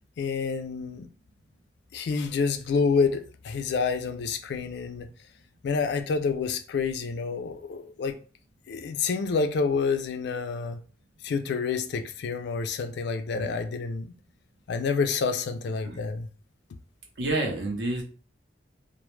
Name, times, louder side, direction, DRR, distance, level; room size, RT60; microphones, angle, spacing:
voice 1, 0.2-1.1 1.9-5.1 5.6-8.2 8.7-10.8 11.2-14.1 14.7-16.3, left 5 dB, 65° left, 0.3 m, -28 dB
voice 2, 17.2-18.0, right 2 dB, 75° right, 0.7 m, -29 dB
2.1 x 2.0 x 3.0 m
head